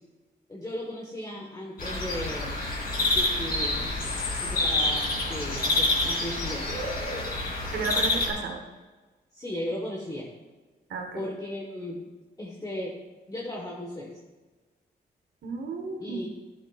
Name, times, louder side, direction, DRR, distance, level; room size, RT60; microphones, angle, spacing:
voice 1, 0.5-2.6 3.1-3.9 4.3-6.6 9.3-10.3 11.1-12.1 12.4-13.0 13.3-14.1 16.0-16.3, left 1 dB, 20° left, -2 dB, 1.3 m, -36 dB
sound 1, 1.8-8.3, left 2 dB, 55° left, 2.9 m, -27 dB
voice 2, 7.7-8.6 10.9-11.2 15.4-16.3, right 4 dB, 80° right, 3 dB, 1.2 m, -33 dB
11.5 x 7.8 x 2.4 m, 1.3 s
cardioid pair, 95°, 18 cm